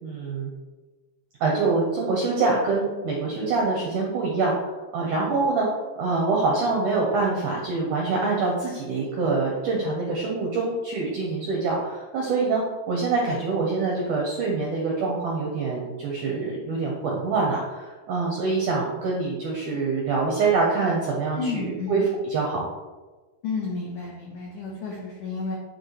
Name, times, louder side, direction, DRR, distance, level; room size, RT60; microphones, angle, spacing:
voice 1, 0.0-0.5 1.4-22.7, right 3 dB, 80° right, -2 dB, 1.8 m, -25 dB
voice 2, 21.4-22.1 23.4-25.6, left 4 dB, 80° left, -2 dB, 1.8 m, -31 dB
10.5 x 4.3 x 3.3 m, 1.2 s
omnidirectional pair, 5.1 m